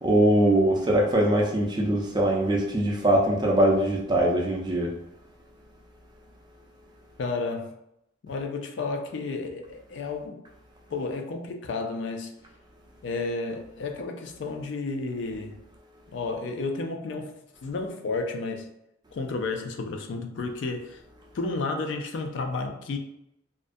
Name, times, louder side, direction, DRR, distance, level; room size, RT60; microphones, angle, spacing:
voice 1, 0.0-4.9, right 1 dB, 20° right, 0.4 m, -22 dB
voice 2, 7.2-7.7 8.2-10.4 10.9-12.3 13.0-15.6 16.1-17.3 17.6-18.7 19.1-21.0 21.3-23.0, left 3 dB, 65° left, 0.3 m, -32 dB
2.4 x 2.1 x 2.5 m
head